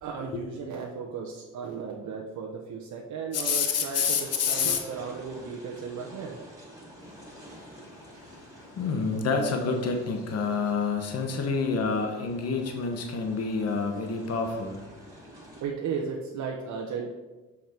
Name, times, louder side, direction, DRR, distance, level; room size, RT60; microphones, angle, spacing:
voice 1, 0.0-6.6 15.6-17.1, right 5 dB, 75° right, 0 dB, 1.0 m, -35 dB
voice 2, 3.3-4.8 7.0-15.0, left 5 dB, 55° left, 4 dB, 1.2 m, -29 dB
sound 1, 3.4-15.6, right 1 dB, 10° right, 2.5 m, -49 dB
7.1 x 5.9 x 4.4 m, 1.2 s
cardioid pair, 90°, 30 cm